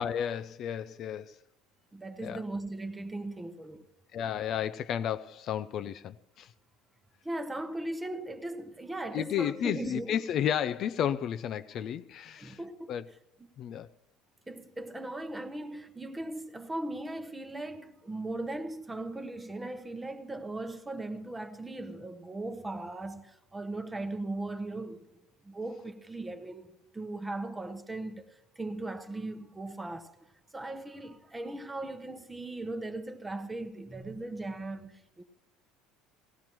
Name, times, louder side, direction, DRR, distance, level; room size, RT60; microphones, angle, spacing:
voice 1, 0.0-1.4 2.2-2.4 4.1-6.5 9.1-12.6 12.9-13.0 13.6-13.9, left 9 dB, 40° left, 0.4 m, -32 dB
voice 2, 1.9-3.8 7.2-10.2 12.3-13.0 14.5-25.1 25.4-30.1 30.5-35.2, right 2 dB, 10° right, 0.9 m, -38 dB
18.0 x 17.5 x 3.0 m
cardioid pair, 145°, 0 cm